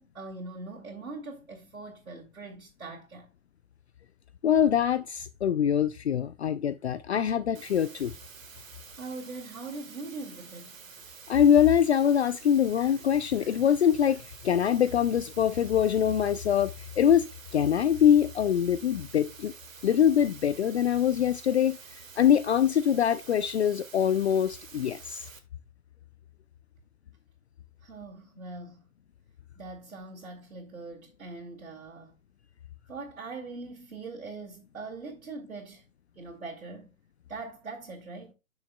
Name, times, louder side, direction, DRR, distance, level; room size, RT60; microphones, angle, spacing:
voice 1, 0.0-3.3 9.0-10.8 27.8-28.9 29.6-32.2 32.9-35.9 36.2-36.9 37.3-38.3, right 3 dB, 90° right, 2.3 m, -42 dB
voice 2, 4.4-8.1 11.3-17.3 17.5-19.5 19.8-21.8 22.2-25.2, left 9 dB, 55° left, 0.5 m, -24 dB
sound 1, 7.5-25.4, right 6 dB, 70° right, 1.6 m, -49 dB
11.5 x 6.3 x 2.2 m
hypercardioid pair, 150°, 41 cm